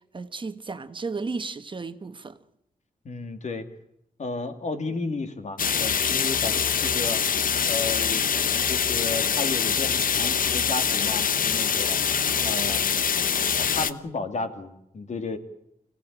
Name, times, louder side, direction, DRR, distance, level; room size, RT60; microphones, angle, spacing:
voice 1, 0.1-2.4, right 4 dB, 35° right, 1.1 m, -34 dB
voice 2, 3.0-3.7 4.2-7.2 7.6-8.3 8.7-12.0 12.4-12.9 13.6-15.4, left 3 dB, 50° left, 2.5 m, -33 dB
sound 1, 5.6-13.9, left 7 dB, 65° left, 1.0 m, -24 dB
26.0 x 17.0 x 8.8 m
wide cardioid pair, 135°, 15 cm